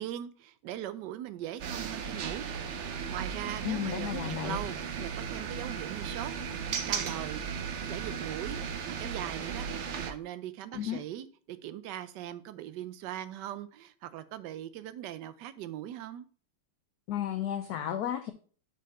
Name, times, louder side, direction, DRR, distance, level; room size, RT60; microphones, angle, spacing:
voice 1, 0.0-2.5 2.8-6.3 6.8-7.4 7.9-9.7 10.0-16.3, right 12 dB, 70° right, 13 dB, 1.1 m, -40 dB
sound 1, 1.6-10.1, right 6 dB, 85° right, 0.6 m, -36 dB
voice 2, 3.6-4.6 10.7-11.0 17.1-18.3, left 10 dB, 75° left, 8 dB, 0.9 m, -33 dB
6.2 x 4.6 x 5.4 m, 0.42 s
omnidirectional pair, 2.2 m